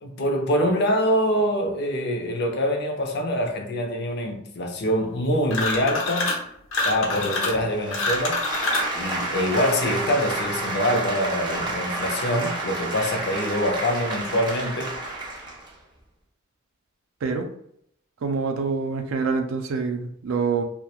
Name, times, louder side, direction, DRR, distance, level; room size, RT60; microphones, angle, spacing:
voice 1, 0.0-6.3 6.8-8.4 9.0-15.0, equal, 55° left, 0.5 m, -25 dB
sound 1, 5.5-6.4 6.7-8.9, left 2 dB, 90° left, 0.7 m, -26 dB
sound 2, 7.7-15.7, right 2 dB, 25° right, 0.5 m, -30 dB
voice 2, 18.2-20.6, right 4 dB, 80° right, 0.4 m, -26 dB
2.2 x 2.0 x 2.9 m
head